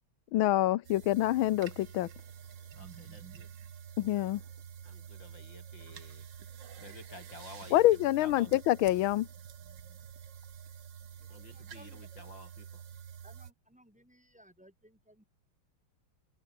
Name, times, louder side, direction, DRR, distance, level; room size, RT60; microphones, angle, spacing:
voice 1, 0.3-2.1 4.0-4.4 7.7-9.3, left 15 dB, 80° left, 1.5 m, -26 dB
sound 1, 0.8-13.5, right 8 dB, 60° right, 2.0 m, -48 dB
voice 2, 2.7-3.5 4.8-6.3 6.8-8.6 11.3-12.8, left 2 dB, 60° left, 8.7 m, -52 dB
voice 3, 11.2-12.1 13.2-15.2, equal, 5° right, 5.1 m, -60 dB
omnidirectional pair, 2.3 m